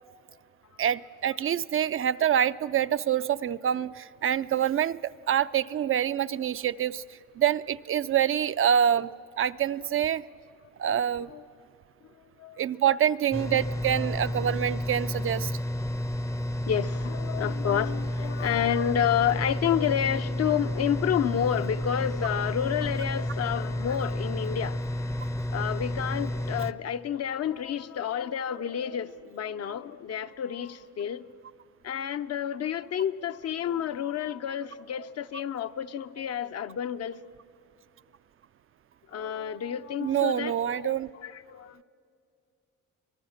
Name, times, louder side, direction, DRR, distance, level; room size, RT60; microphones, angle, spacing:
voice 1, 0.8-5.0 5.3-7.0 7.4-9.1 9.4-10.2 10.8-11.3 12.6-15.5 40.0-41.1, right 9 dB, 45° right, 13 dB, 0.4 m, -26 dB
sound 1, 13.3-26.7, left 1 dB, 10° left, 0.6 m, -31 dB
voice 2, 16.7-24.8 25.5-31.2 31.8-37.2 39.1-41.8, left 9 dB, 55° left, 10 dB, 0.7 m, -30 dB
26.0 x 19.0 x 6.5 m, 2.4 s
cardioid pair, 90°, 30 cm